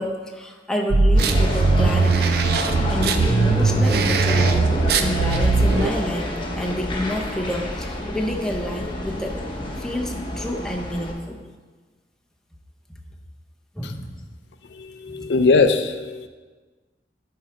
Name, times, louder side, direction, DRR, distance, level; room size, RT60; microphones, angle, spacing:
voice 1, 0.0-11.4 13.7-14.1 15.1-15.3, left 1 dB, 5° left, 0 dB, 0.7 m, -29 dB
sound 1, 0.9-5.9, right 3 dB, 60° right, 0.5 m, -19 dB
sound 2, 1.1-11.1, left 1 dB, 30° left, 1.0 m, -28 dB
voice 2, 15.0-16.3, left 3 dB, 70° left, 9 dB, 0.4 m, -19 dB
11.0 x 3.8 x 4.3 m, 1.4 s
head